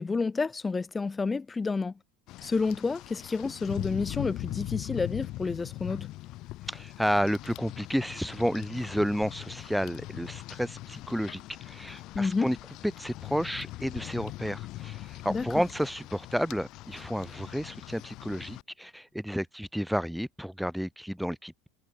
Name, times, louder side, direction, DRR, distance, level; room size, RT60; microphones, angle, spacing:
voice 1, 0.0-1.9 2.4-6.1 12.1-12.5 15.3-15.5, left 4 dB, 20° left, 0.9 m, -29 dB
Rain, 2.3-18.6, left 17 dB, 55° left, 4.2 m, -41 dB
voice 2, 6.7-12.6 12.8-21.7, equal, ahead, 2.3 m, -31 dB
hypercardioid pair, 80°, 0 cm